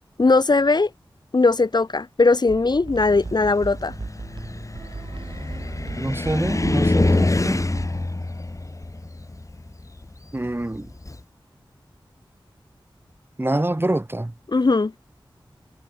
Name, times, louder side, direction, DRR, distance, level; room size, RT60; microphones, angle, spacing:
voice 1, 0.2-0.9 1.3-3.9 14.5-14.9, left 3 dB, 55° left, 1.2 m, -19 dB
sound 1, 2.5-8.1, right 3 dB, 65° right, 7.0 m, -37 dB
Car, 3.0-11.2, left 2 dB, 40° left, 4.2 m, -26 dB
voice 2, 6.0-7.7 10.3-10.9 13.4-14.3, right 1 dB, 25° right, 7.4 m, -25 dB
wide cardioid pair, 65°, 9 cm